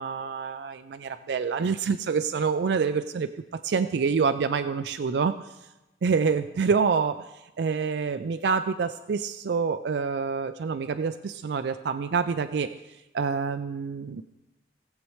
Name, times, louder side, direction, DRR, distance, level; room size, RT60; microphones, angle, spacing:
voice 1, 0.0-3.3 3.6-5.3 6.0-7.3 7.6-12.7 13.1-14.2, right 5 dB, 65° right, 10 dB, 0.4 m, -27 dB
18.5 x 7.4 x 3.2 m, 1.0 s
head